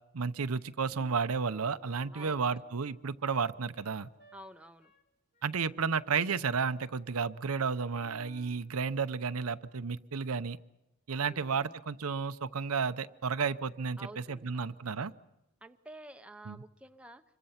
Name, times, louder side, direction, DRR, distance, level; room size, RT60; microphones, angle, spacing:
voice 1, 0.1-4.1 5.4-10.6 11.1-15.1 16.5-16.6, right 5 dB, 90° right, 12 dB, 0.7 m, -32 dB
Wind instrument woodwind instrument, 1.4-4.4 4.8-5.1 5.3-6.0 6.3-7.0 7.4-7.6 8.0-8.7, right 1 dB, 50° left, 3.1 m, -60 dB
voice 2, 2.1-2.7 4.3-4.9 11.2-11.8 14.0-14.8 15.6-17.2, right 1 dB, 5° right, 7 dB, 0.7 m, -50 dB
26.0 x 23.5 x 5.8 m, 0.92 s
head